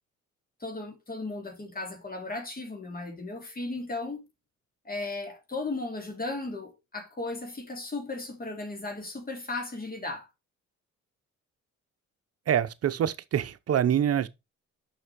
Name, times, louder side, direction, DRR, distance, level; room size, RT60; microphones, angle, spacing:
voice 1, 0.6-4.3 4.8-10.3, left 2 dB, 30° left, 2.8 m, -36 dB
voice 2, 12.5-14.3, right 9 dB, 55° right, 0.8 m, -25 dB
6.3 x 5.9 x 4.7 m
cardioid pair, 90°, 30 cm